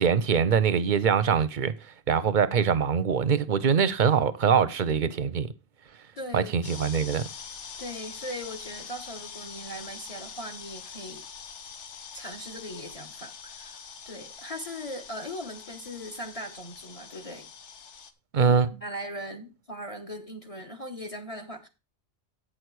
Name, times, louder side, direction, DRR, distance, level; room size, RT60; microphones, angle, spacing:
voice 1, 0.0-1.7 2.1-5.5 6.3-7.2 18.3-18.7, right 6 dB, 50° right, 0.7 m, -23 dB
voice 2, 6.2-6.5 7.8-11.2 12.1-17.5 18.4-21.7, equal, 35° left, 1.0 m, -39 dB
sound 1, 6.6-18.1, left 6 dB, 80° left, 1.2 m, -44 dB
8.9 x 6.3 x 4.6 m
omnidirectional pair, 1.2 m